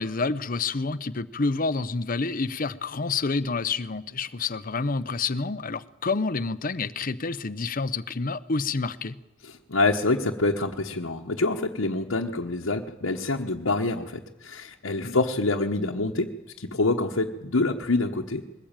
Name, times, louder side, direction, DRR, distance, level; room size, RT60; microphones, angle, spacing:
voice 1, 0.0-9.2 15.0-15.2, left 4 dB, 45° left, 0.8 m, -28 dB
voice 2, 9.4-16.3 16.6-18.4, left 2 dB, 85° left, 1.2 m, -26 dB
21.5 x 19.0 x 9.0 m
head